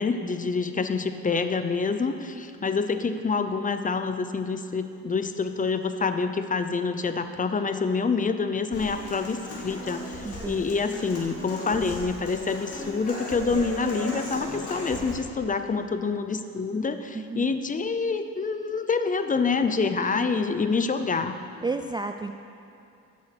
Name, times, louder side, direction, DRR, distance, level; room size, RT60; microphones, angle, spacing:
voice 1, 0.0-21.3, left 4 dB, 25° left, 9 dB, 0.6 m, -27 dB
Human voice / Acoustic guitar, 8.7-15.1, left 2 dB, 50° left, 2.7 m, -37 dB
voice 2, 10.2-10.7 17.1-17.5 21.6-22.3, right 3 dB, 15° right, 6 dB, 0.3 m, -32 dB
8.3 x 6.4 x 7.9 m, 2.6 s
cardioid pair, 90°, 30 cm